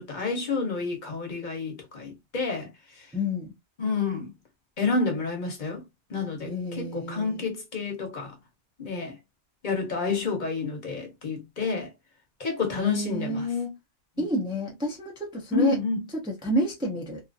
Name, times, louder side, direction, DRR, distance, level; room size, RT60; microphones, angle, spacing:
voice 1, 0.0-2.7 3.8-4.3 4.8-5.8 6.1-8.3 8.8-9.1 9.6-11.9 12.4-13.5 14.2-14.3 15.5-16.0, left 4 dB, 45° left, 1.0 m, -29 dB
voice 2, 3.1-3.5 6.5-7.4 12.8-13.8 14.2-15.8 16.2-17.2, equal, 5° right, 0.6 m, -29 dB
2.8 x 2.4 x 2.5 m
omnidirectional pair, 1.2 m